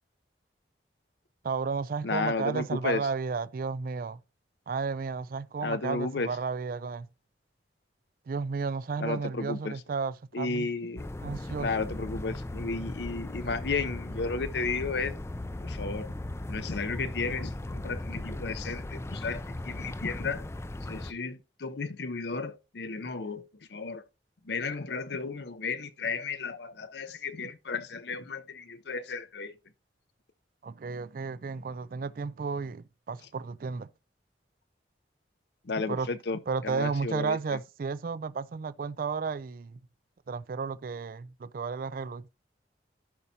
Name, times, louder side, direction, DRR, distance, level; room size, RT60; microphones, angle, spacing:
voice 1, 1.4-4.2 4.7-7.1 8.3-10.7 11.2-11.7 30.6-33.9 35.9-36.1 36.5-39.8 40.3-42.2, right 5 dB, 50° right, 0.4 m, -33 dB
voice 2, 2.0-3.1 5.6-6.4 9.0-9.8 10.3-11.1 11.6-15.1 15.6-16.1 16.5-20.5 20.8-24.0 24.4-29.5 35.6-37.6, left 4 dB, 70° left, 0.7 m, -33 dB
sound 1, 11.0-21.1, left 1 dB, 15° left, 0.4 m, -37 dB
15.0 x 5.5 x 2.7 m
head